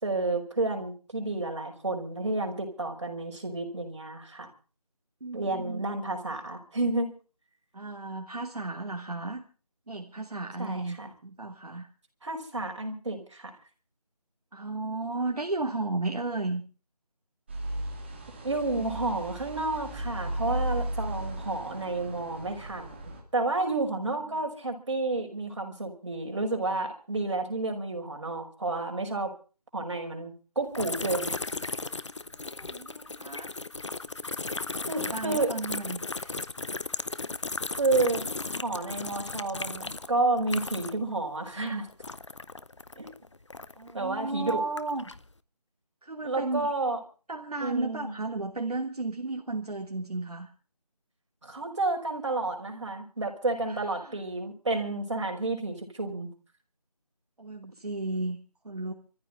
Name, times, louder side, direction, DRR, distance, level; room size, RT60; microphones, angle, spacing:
voice 1, 0.0-4.5 5.3-7.1 10.6-11.1 12.2-13.5 18.4-29.3 29.7-31.3 34.8-35.5 37.7-38.2 38.5-41.9 43.0-43.1 43.9-44.6 46.2-47.0 47.6-48.1 51.4-56.3, right 2 dB, 50° right, 2 dB, 5.5 m, -30 dB
voice 2, 5.2-5.8 7.7-9.4 9.9-11.0 11.2-11.9 14.5-16.6 24.2-24.5 32.6-33.5 34.8-36.0 43.8-45.1 46.0-46.7 47.3-50.5 53.7-54.2 57.4-58.4 58.6-58.9, right 2 dB, 75° right, 2 dB, 3.0 m, -34 dB
sound 1, 17.5-23.2, right 1 dB, 15° right, 2.2 m, -35 dB
sound 2, 30.7-41.1 41.4-43.9 44.4-45.2, left 3 dB, 50° left, 0.9 m, -36 dB
25.5 x 14.5 x 3.7 m, 0.36 s
figure-of-eight pair, 175°, 20 cm